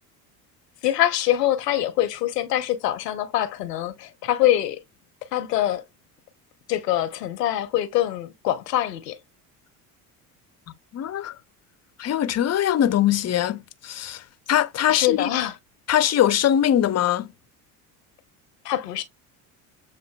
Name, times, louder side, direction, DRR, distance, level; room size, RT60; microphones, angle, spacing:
voice 1, 0.8-4.8 5.3-5.8 6.7-9.2 14.9-15.5 18.6-19.0, left 13 dB, 90° left, 0.9 m, -24 dB
voice 2, 10.9-11.3 12.0-14.2 14.5-15.3 15.9-17.3, left 11 dB, 35° left, 0.7 m, -22 dB
7.4 x 2.5 x 2.3 m
hypercardioid pair, 65°, 47 cm